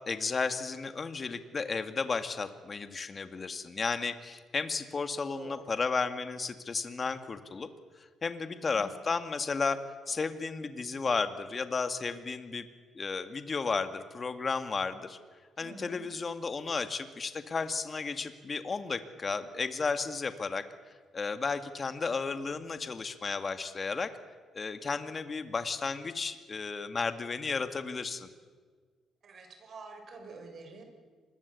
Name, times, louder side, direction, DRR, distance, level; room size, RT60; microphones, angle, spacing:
voice 1, 0.0-7.7 8.2-9.8 10.1-12.7 12.9-15.2 15.6-20.6 21.1-24.1 24.5-28.3, left 4 dB, 35° left, 10 dB, 2.0 m, -33 dB
voice 2, 5.3-5.7 8.5-8.9 15.6-16.0 29.2-30.8, right 3 dB, 55° right, 5 dB, 6.6 m, -48 dB
26.0 x 21.0 x 8.5 m, 1.6 s
cardioid pair, 90°, 0 cm